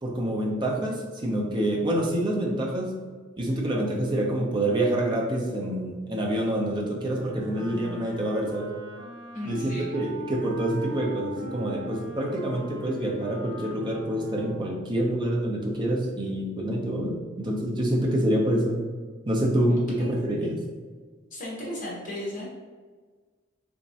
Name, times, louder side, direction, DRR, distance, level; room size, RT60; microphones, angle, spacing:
voice 1, 0.0-2.9 3.4-8.7 9.4-18.8 19.3-20.6, right 1 dB, 20° right, -1 dB, 0.5 m, -27 dB
Wind instrument woodwind instrument, 7.0-14.9, equal, 80° right, 0.7 m, -41 dB
voice 2, 9.3-9.9 19.7-20.2 21.3-22.5, equal, 40° left, -5 dB, 0.9 m, -35 dB
3.4 x 3.0 x 2.7 m, 1.5 s
head